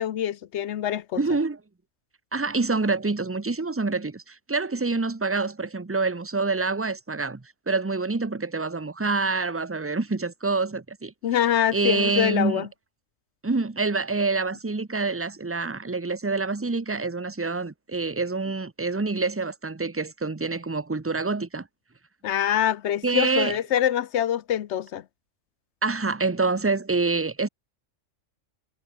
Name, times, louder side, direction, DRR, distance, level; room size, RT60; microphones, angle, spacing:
voice 1, 0.0-1.2 11.2-12.7 22.2-25.0, left 10 dB, 65° left, 0.9 m, -25 dB
voice 2, 1.2-1.6 2.3-11.1 11.7-12.7 13.4-21.7 23.0-23.6 25.8-27.5, right 3 dB, 15° right, 0.6 m, -26 dB
omnidirectional pair, 1.3 m